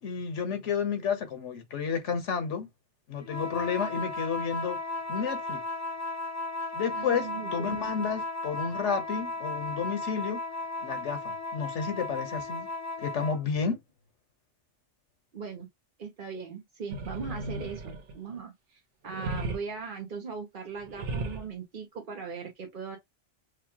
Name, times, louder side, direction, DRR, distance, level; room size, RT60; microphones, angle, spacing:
voice 1, 0.0-2.7 3.1-4.8 5.1-5.6 6.7-10.4 10.8-12.7 13.0-13.8, left 6 dB, 85° left, 1.3 m, -31 dB
sound 1, 3.2-13.4, left 2 dB, 25° left, 0.3 m, -35 dB
voice 2, 6.9-8.0 10.8-10.9 15.3-15.7 16.0-23.0, right 5 dB, 50° right, 0.9 m, -39 dB
sound 2, 16.9-18.4 19.1-19.6 20.8-21.5, right 2 dB, 80° right, 1.2 m, -35 dB
5.0 x 2.3 x 2.8 m
omnidirectional pair, 1.2 m